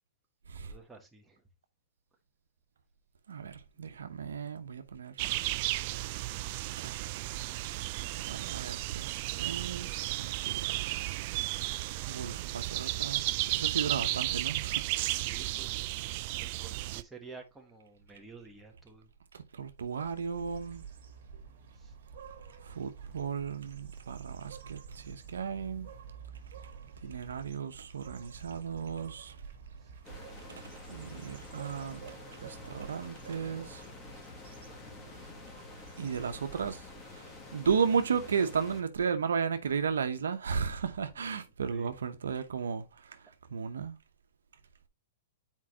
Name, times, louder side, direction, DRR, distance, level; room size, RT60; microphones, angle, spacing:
voice 1, 0.6-1.4 3.7-4.2 15.1-15.9 16.4-19.1 21.7-21.9 27.1-27.2 29.8-29.9 41.7-41.9, right 4 dB, 5° right, 1.3 m, -52 dB
voice 2, 3.3-5.2 6.8-6.9 8.3-10.8 12.1-15.3 19.3-20.8 22.6-25.9 27.0-29.3 30.5-32.0 32.4-33.8 36.0-36.8 37.1-43.2 43.5-44.0, right 6 dB, 90° right, 0.8 m, -34 dB
sound 1, 5.2-17.0, right 18 dB, 45° right, 0.3 m, -34 dB
sound 2, 19.8-37.1, right 6 dB, 60° right, 1.9 m, -50 dB
sound 3, 30.0-38.8, left 3 dB, 20° left, 2.0 m, -49 dB
7.4 x 4.6 x 2.8 m
hypercardioid pair, 135°, 0 cm